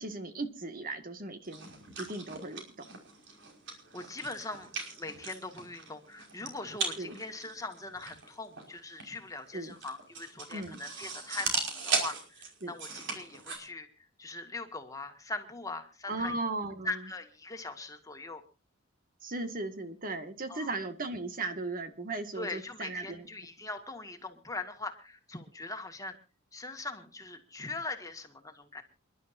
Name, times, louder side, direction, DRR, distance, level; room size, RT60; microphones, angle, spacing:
voice 1, 0.0-1.7 2.0-3.0 7.0-7.2 9.5-9.8 10.5-10.8 12.6-12.7 16.1-16.9 19.2-23.3, right 2 dB, 45° right, 8 dB, 1.9 m, -37 dB
sound 1, 1.4-13.6, right 4 dB, 60° right, 5.4 m, -38 dB
voice 2, 3.7-16.3 16.8-18.4 20.5-20.7 22.3-26.2 26.5-28.8, left 2 dB, 15° left, 5 dB, 1.9 m, -41 dB
28.5 x 11.5 x 2.7 m, 0.32 s
head